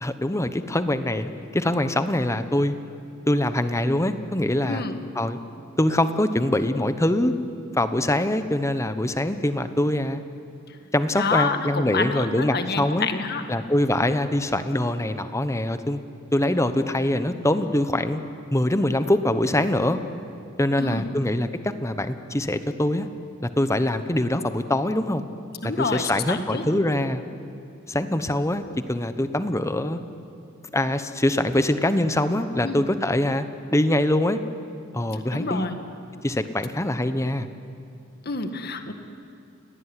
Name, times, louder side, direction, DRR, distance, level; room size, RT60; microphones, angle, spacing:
voice 1, 0.0-2.7 3.3-4.8 5.1-5.4 5.8-7.3 7.7-10.2 10.9-13.1 13.5-16.0 16.3-18.2 18.5-20.0 20.6-23.1 23.4-25.2 25.6-27.2 27.9-28.6 28.9-30.0 30.7-33.4 33.7-34.4 34.9-35.7 36.2-37.5, left 1 dB, 15° left, 10 dB, 1.0 m, -23 dB
voice 2, 11.2-13.4 20.8-21.0 25.6-26.6 32.6-32.8 35.1-35.8 38.3-38.9, left 4 dB, 50° left, 7 dB, 1.8 m, -28 dB
29.5 x 17.5 x 9.9 m, 2.6 s
head